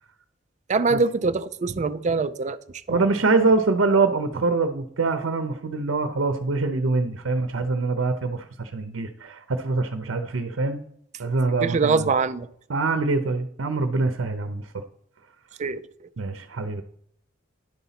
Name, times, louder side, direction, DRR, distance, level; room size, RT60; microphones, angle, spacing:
voice 1, 0.7-2.6 2.9-3.1 11.6-12.5 15.6-15.8, right 4 dB, 40° right, 0.4 m, -23 dB
voice 2, 2.9-10.8 11.2-12.1 12.7-14.8 16.2-16.8, right 3 dB, 85° right, 0.7 m, -24 dB
10.5 x 4.1 x 5.7 m
head